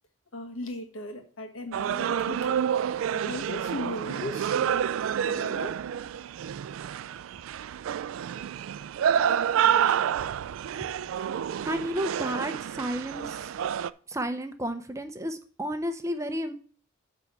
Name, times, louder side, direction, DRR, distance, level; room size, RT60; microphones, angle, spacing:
voice 1, 0.3-2.6 3.1-4.8 5.3-5.8, left 1 dB, 85° left, 4 dB, 1.5 m, -37 dB
sound 1, 1.7-13.9, right 9 dB, 85° right, 0.3 m, -28 dB
voice 2, 11.7-13.5 14.1-16.5, equal, 15° right, 8 dB, 0.6 m, -32 dB
9.0 x 3.5 x 6.7 m, 0.43 s
head